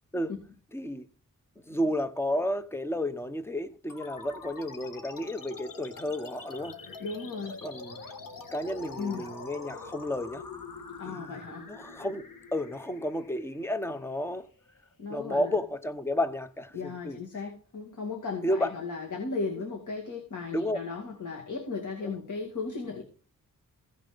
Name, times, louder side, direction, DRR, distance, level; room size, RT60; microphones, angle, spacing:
voice 1, 0.7-1.1 1.7-6.8 7.6-8.0 8.5-10.4 11.1-12.3 12.5-14.5 15.1-17.2 18.4-18.7 20.5-20.8 22.0-22.2, left 1 dB, 10° left, 0.8 m, -32 dB
sound 1, 3.9-14.8, left 4 dB, 85° left, 1.7 m, -45 dB
voice 2, 7.0-7.6 9.0-9.3 11.0-11.7 15.0-15.5 16.7-23.0, left 4 dB, 65° left, 2.3 m, -36 dB
16.0 x 5.9 x 5.1 m
wide cardioid pair, 125°, 32 cm